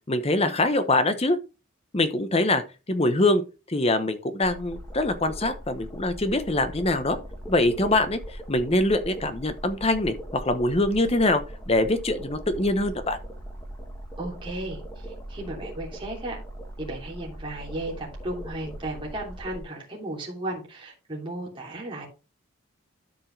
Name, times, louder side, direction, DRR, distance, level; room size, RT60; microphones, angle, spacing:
voice 1, 0.1-1.4 1.9-2.6 2.9-3.4 3.7-7.2 7.5-8.2 8.5-13.2, left 2 dB, 30° left, 0.9 m, -23 dB
sound 1, 4.4-19.6, right 1 dB, 10° left, 2.0 m, -40 dB
voice 2, 14.2-16.4 16.8-22.1, right 1 dB, 25° right, 3.2 m, -35 dB
12.5 x 5.3 x 3.3 m
head